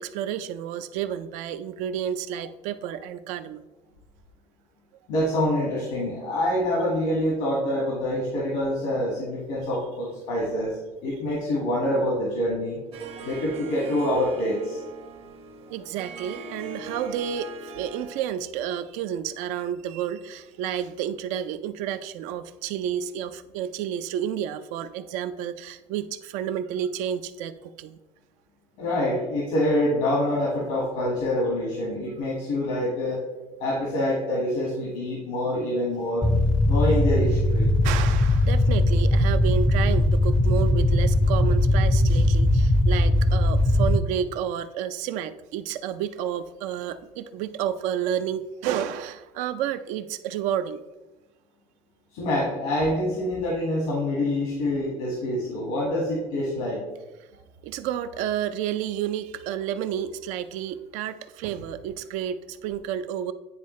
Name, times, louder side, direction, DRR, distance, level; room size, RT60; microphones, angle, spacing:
voice 1, 0.0-3.6 15.7-27.5 27.8-28.0 37.8-50.8 57.6-63.3, right 9 dB, 80° right, 11 dB, 0.4 m, -30 dB
voice 2, 5.1-12.8 13.2-14.8 28.8-33.2 33.6-36.3 36.7-37.7 52.1-56.8, left 1 dB, 90° left, -4 dB, 1.8 m, -26 dB
Harp, 12.9-18.4, right 4 dB, 50° right, 0.8 m, -40 dB
sound 1, 36.2-44.0, left 1 dB, 10° left, 0.4 m, -20 dB
9.5 x 3.7 x 3.2 m, 1.1 s
cardioid pair, 110°, 12 cm